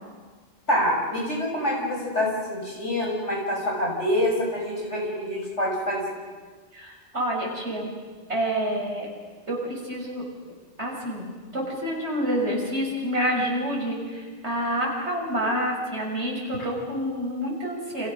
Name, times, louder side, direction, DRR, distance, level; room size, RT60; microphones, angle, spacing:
voice 1, 0.7-6.0, left 1 dB, 75° left, -1 dB, 7.0 m, -26 dB
voice 2, 6.7-7.9 8.3-9.1 9.5-10.2 10.8-18.1, equal, 65° right, -1 dB, 6.8 m, -28 dB
29.5 x 27.0 x 6.5 m, 1.5 s
omnidirectional pair, 1.2 m